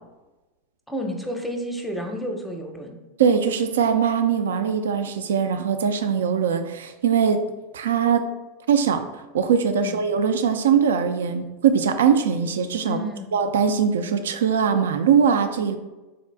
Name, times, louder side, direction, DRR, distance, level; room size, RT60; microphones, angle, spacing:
voice 1, 0.9-3.0 9.8-10.0 12.9-13.3, equal, 5° left, 3 dB, 0.6 m, -30 dB
voice 2, 3.2-7.4 7.7-8.2 8.7-9.0 9.3-13.0 13.3-15.8, right 7 dB, 80° right, 8 dB, 0.3 m, -21 dB
3.6 x 2.4 x 3.3 m, 1.1 s
hypercardioid pair, 90°, 0 cm